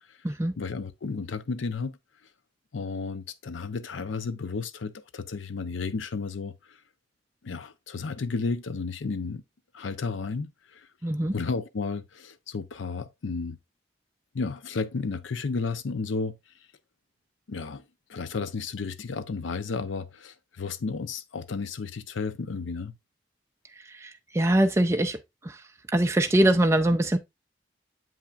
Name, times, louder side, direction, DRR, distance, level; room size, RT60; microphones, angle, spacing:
voice 1, 0.6-2.0 2.7-6.8 7.4-9.4 9.7-10.9 11.3-13.6 14.3-16.4 17.5-17.8 18.1-22.9, left 4 dB, 85° left, 0.6 m, -32 dB
voice 2, 11.0-11.3 24.0-25.2 25.4-25.6 25.9-27.2, right 1 dB, 15° right, 0.4 m, -23 dB
7.3 x 5.7 x 2.4 m
head